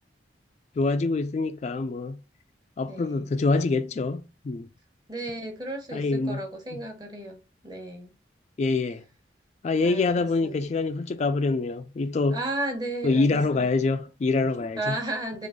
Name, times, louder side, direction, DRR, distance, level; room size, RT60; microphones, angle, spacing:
voice 1, 0.8-2.2 2.8-4.7 5.9-6.4 8.6-9.0 9.6-12.4 13.0-14.9, left 3 dB, 40° left, 0.3 m, -25 dB
voice 2, 2.9-3.3 5.1-7.4 7.6-8.1 9.8-10.6 12.3-13.9 14.8-15.5, right 2 dB, 25° right, 1.1 m, -34 dB
3.8 x 3.4 x 3.7 m
head